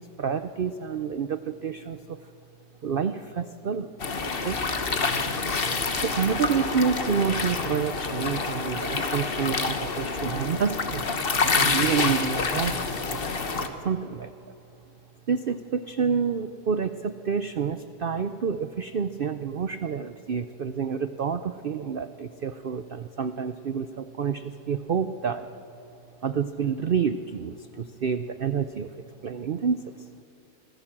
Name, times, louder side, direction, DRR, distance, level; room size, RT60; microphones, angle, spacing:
voice 1, 0.0-2.2 2.8-3.9 4.4-4.6 6.0-13.6 13.8-14.3 15.3-25.5 26.2-30.1, right 6 dB, 65° right, 11 dB, 0.5 m, -29 dB
sound 1, 4.0-13.7, left 4 dB, 40° left, 1.3 m, -27 dB
26.0 x 16.0 x 7.4 m, 2.9 s
omnidirectional pair, 1.7 m